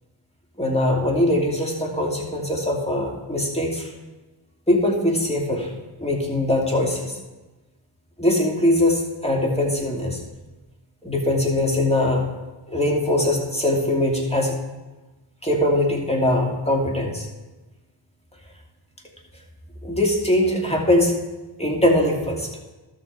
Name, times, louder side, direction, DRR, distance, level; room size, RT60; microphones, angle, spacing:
voice 1, 0.6-3.9 4.7-5.7 6.0-7.2 8.2-10.2 11.0-12.3 12.7-14.6 15.4-17.3 19.8-21.1 21.6-22.5, left 1 dB, 10° left, -1 dB, 2.7 m, -21 dB
13.0 x 6.5 x 4.9 m, 1.1 s
cardioid pair, 40°, 49 cm